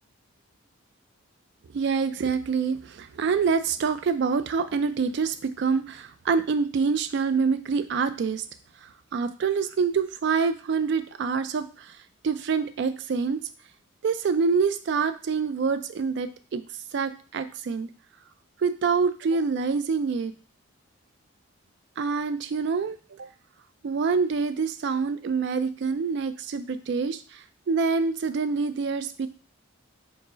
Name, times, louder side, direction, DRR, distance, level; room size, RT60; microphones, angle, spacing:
voice 1, 1.7-8.5 8.8-12.0 12.2-13.4 14.0-16.6 16.9-17.9 18.6-20.3 22.0-23.3 23.8-29.3, right 5 dB, 55° right, 11 dB, 0.3 m, -26 dB
4.5 x 2.0 x 3.8 m, 0.37 s
head